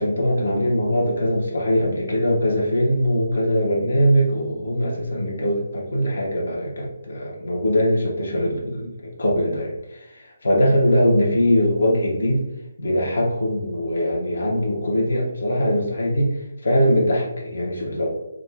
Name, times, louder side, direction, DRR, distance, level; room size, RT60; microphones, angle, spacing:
voice 1, 0.0-12.4 12.8-18.1, equal, 85° left, -3 dB, 1.0 m, -21 dB
3.7 x 2.3 x 3.4 m, 0.93 s
hypercardioid pair, 165°, 0 cm